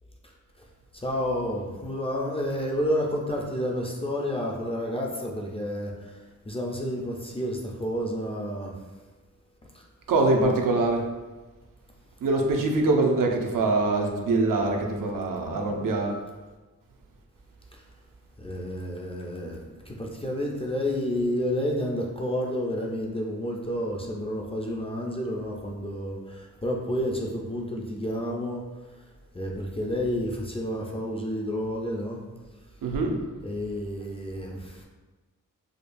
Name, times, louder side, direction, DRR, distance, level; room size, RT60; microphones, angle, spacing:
voice 1, 0.2-0.7 0.9-8.9 9.7-9.9 17.7-17.8 18.4-29.1 29.3-32.2 33.4-34.8, equal, 15° left, -1 dB, 0.4 m, -30 dB
voice 2, 10.1-11.1 12.2-16.2 32.8-33.1, right 2 dB, 70° right, 2 dB, 0.6 m, -24 dB
5.0 x 2.2 x 2.5 m, 1.2 s
wide cardioid pair, 130°, 34 cm